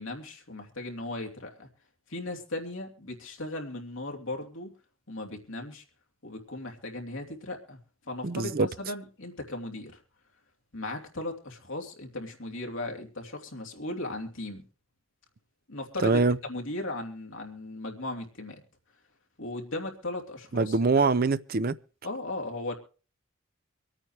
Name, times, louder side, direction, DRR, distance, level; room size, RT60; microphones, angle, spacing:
voice 1, 0.0-1.7 2.1-4.7 5.1-5.8 6.2-7.8 8.1-10.0 10.7-14.6 15.7-18.6 19.4-21.1 22.0-22.7, left 2 dB, 75° left, 3.0 m, -37 dB
voice 2, 8.2-8.7 16.0-16.4 20.5-21.8, right 3 dB, 45° right, 0.6 m, -24 dB
25.0 x 8.9 x 3.3 m
head